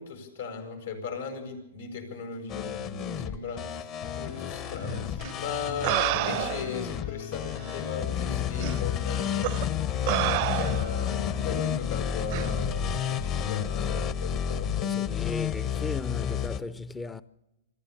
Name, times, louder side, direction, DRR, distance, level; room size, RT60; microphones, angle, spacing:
voice 1, 0.0-3.9 4.2-9.5 9.9-14.9, left 4 dB, 80° left, 7.7 m, -37 dB
sound 1, 2.5-16.6, left 9 dB, 35° left, 1.2 m, -31 dB
sound 2, 4.0-11.6, left 12 dB, 55° left, 2.9 m, -40 dB
sound 3, 5.2-5.3 5.8-6.8 7.7-7.8 8.6-8.8 9.4-9.6 10.1-11.0 12.3-12.5, right 19 dB, 50° right, 0.6 m, -29 dB
voice 2, 14.8-17.2, left 3 dB, 10° left, 0.6 m, -36 dB
25.5 x 14.0 x 7.2 m
hypercardioid pair, 120°, 0 cm